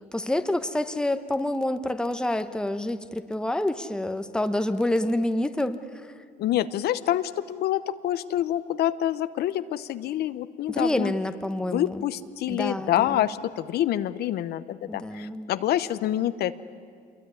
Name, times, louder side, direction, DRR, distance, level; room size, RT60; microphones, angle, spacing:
voice 1, 0.1-6.2 10.7-12.0 12.5-13.2 14.9-15.5, left 1 dB, 5° left, 9 dB, 1.1 m, -28 dB
voice 2, 6.4-11.1 11.7-16.6, left 12 dB, 70° left, 12 dB, 0.9 m, -27 dB
26.5 x 22.5 x 9.8 m, 2.1 s
cardioid pair, 110°, 17 cm